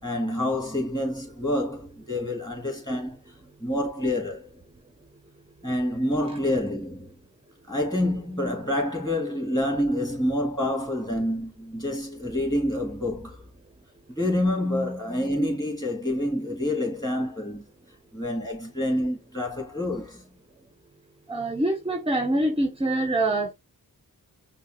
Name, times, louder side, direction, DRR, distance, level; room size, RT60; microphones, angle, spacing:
voice 1, 0.0-3.2 3.6-4.5 5.6-7.1 7.7-13.5 14.2-17.7 18.1-20.3, left 1 dB, 10° left, 2.0 m, -27 dB
voice 2, 21.3-23.5, right 1 dB, 15° right, 0.6 m, -25 dB
5.5 x 2.2 x 2.8 m
cardioid pair, 45°, 37 cm